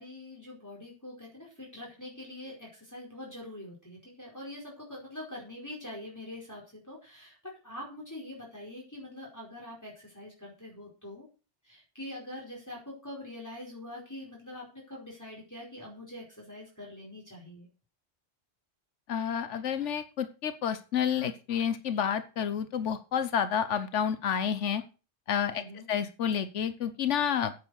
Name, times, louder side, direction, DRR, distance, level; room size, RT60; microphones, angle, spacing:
voice 1, 0.0-11.3 11.6-17.7 25.5-25.9, left 1 dB, 15° left, -3 dB, 4.8 m, -44 dB
voice 2, 19.1-24.8 25.3-25.6 25.9-27.5, left 8 dB, 90° left, 12 dB, 1.2 m, -29 dB
9.4 x 9.1 x 6.5 m, 0.34 s
omnidirectional pair, 1.2 m